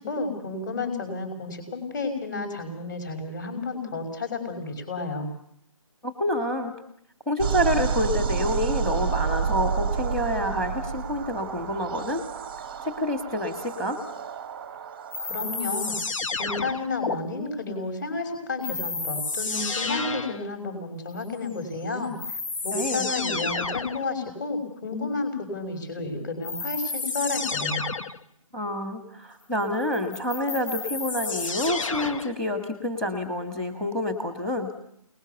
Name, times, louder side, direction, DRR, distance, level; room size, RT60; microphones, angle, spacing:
voice 1, 0.0-5.3 15.2-15.9 16.3-22.1 22.6-27.9, left 3 dB, 30° left, 6 dB, 5.9 m, -31 dB
voice 2, 6.0-6.7 7.3-12.2 12.8-14.0 22.7-23.1 28.5-34.7, left 1 dB, 5° left, 7 dB, 1.6 m, -28 dB
sound 1, 7.4-16.0, right 6 dB, 15° right, 0.9 m, -30 dB
sound 2, 15.1-17.2 18.6-20.4 21.7-21.8 22.2-24.0 26.4-28.2 29.9-32.4, left 3 dB, 60° left, 1.3 m, -31 dB
28.0 x 20.0 x 7.0 m, 0.69 s
figure-of-eight pair, 160°, 19 cm